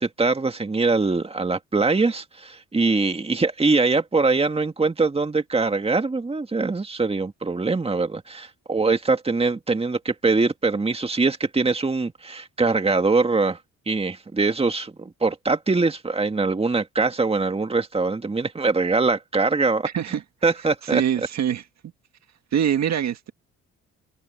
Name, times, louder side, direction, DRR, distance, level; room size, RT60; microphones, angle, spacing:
voice 1, 0.0-13.6 13.9-19.9 20.4-21.0, right 3 dB, 20° right, 2.1 m, -23 dB
voice 2, 20.9-21.6 22.5-23.3, right 9 dB, 60° right, 1.8 m, -23 dB
open air
cardioid pair, 90°, 30 cm